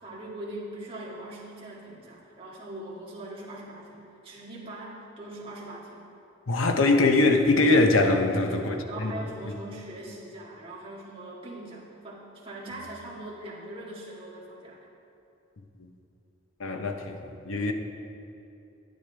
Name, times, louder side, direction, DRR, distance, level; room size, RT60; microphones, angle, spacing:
voice 1, 0.0-6.1 8.4-14.8, right 1 dB, 30° right, -6 dB, 1.9 m, -41 dB
voice 2, 6.5-9.1 9.5-9.6 15.8-15.9 16.6-17.7, left 2 dB, 80° left, 5 dB, 0.8 m, -23 dB
12.0 x 9.7 x 3.4 m, 2.7 s
head